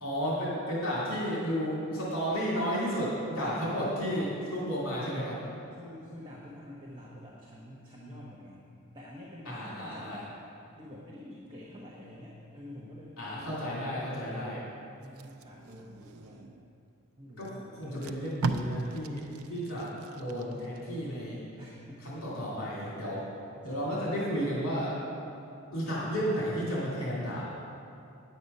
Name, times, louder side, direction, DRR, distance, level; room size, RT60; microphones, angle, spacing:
voice 1, 0.0-5.4 9.5-10.2 13.2-14.6 17.4-21.4 22.0-23.2 23.6-25.0 25.7-27.5, equal, 65° left, -6 dB, 2.4 m, -32 dB
voice 2, 3.4-3.9 5.7-8.6 8.9-10.3 10.8-13.6 15.0-16.6 17.2-18.1 21.6-22.2 23.7-24.4, left 1 dB, 20° right, -5 dB, 1.1 m, -47 dB
Packing tape duct tape, 15.0-16.7 17.4-17.5 17.8-20.8 21.2-21.4, right 4 dB, 75° right, 0.5 m, -38 dB
9.4 x 8.0 x 5.4 m, 2.6 s
head